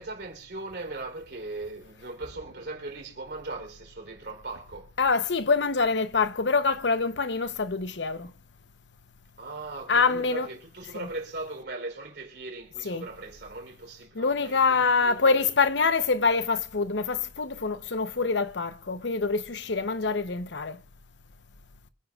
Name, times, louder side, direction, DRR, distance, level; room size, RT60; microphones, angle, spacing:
voice 1, 0.0-4.9 9.4-15.5, right 2 dB, 70° right, 3.8 m, -39 dB
voice 2, 5.0-8.3 9.9-10.5 10.9-11.1 12.8-13.1 14.1-20.8, left 4 dB, 85° left, 0.9 m, -25 dB
26.0 x 10.0 x 2.4 m
head